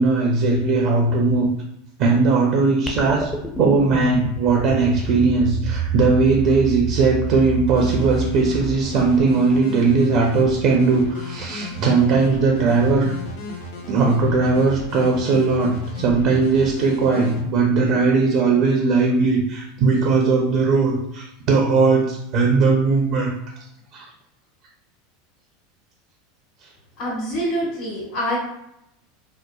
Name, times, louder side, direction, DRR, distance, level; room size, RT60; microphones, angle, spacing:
voice 1, 0.0-1.5 2.0-13.2 13.9-23.3 23.9-24.1, right 4 dB, 50° right, 0 dB, 0.4 m, -19 dB
sound 1, 2.9-9.4, right 4 dB, 15° left, 0.4 m, -28 dB
sound 2, 7.7-17.4, left 2 dB, 65° left, 0.5 m, -35 dB
voice 2, 27.0-28.4, equal, 50° left, -6 dB, 1.3 m, -25 dB
2.8 x 2.1 x 2.3 m, 0.82 s
hypercardioid pair, 85°, 0 cm